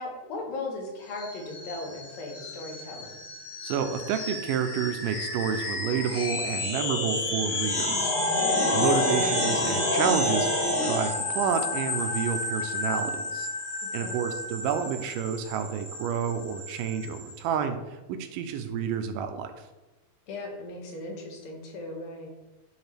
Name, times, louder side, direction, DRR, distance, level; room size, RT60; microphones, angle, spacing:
voice 1, 0.0-3.2 8.4-8.8 13.8-14.2 20.3-22.3, left 2 dB, 85° left, 0 dB, 3.0 m, -37 dB
sound 1, 1.1-17.3, left 2 dB, 55° left, 1.1 m, -30 dB
voice 2, 3.6-8.4 8.7-13.5 13.9-19.5, right 7 dB, 80° right, 8 dB, 2.1 m, -30 dB
10.5 x 3.7 x 3.3 m, 1.1 s
omnidirectional pair, 4.0 m